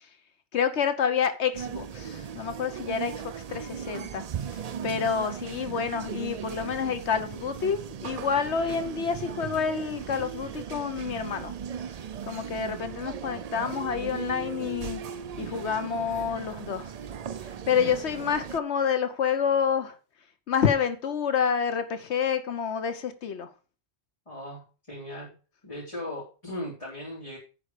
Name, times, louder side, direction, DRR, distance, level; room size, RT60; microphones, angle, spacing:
voice 1, 0.5-4.2 4.8-11.5 12.3-15.0 15.4-16.9 17.7-19.9 20.5-23.5, left 7 dB, 80° left, 1.2 m, -28 dB
sound 1, 1.5-18.6, right 8 dB, 50° right, 0.5 m, -37 dB
voice 2, 4.8-5.1 24.3-25.3 25.6-27.4, equal, 30° left, 3.2 m, -38 dB
9.9 x 4.6 x 6.6 m
omnidirectional pair, 1.1 m